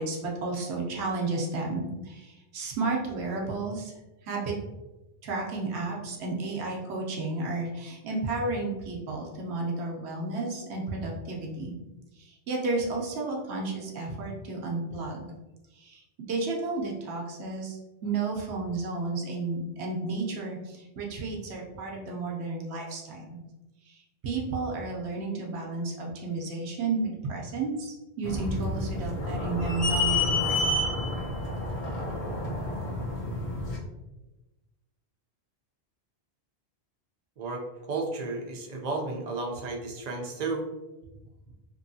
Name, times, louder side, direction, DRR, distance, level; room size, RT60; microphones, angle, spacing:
voice 1, 0.0-3.9 4.2-4.5 5.2-11.7 12.2-15.3 15.7-23.4 23.8-30.7, right 3 dB, 90° right, -1 dB, 1.0 m, -32 dB
sound 1, 28.2-33.8, left 2 dB, 45° left, 0.7 m, -29 dB
voice 2, 37.4-40.7, right 3 dB, 50° right, 1 dB, 0.5 m, -33 dB
3.0 x 2.7 x 2.6 m, 1.0 s
omnidirectional pair, 1.1 m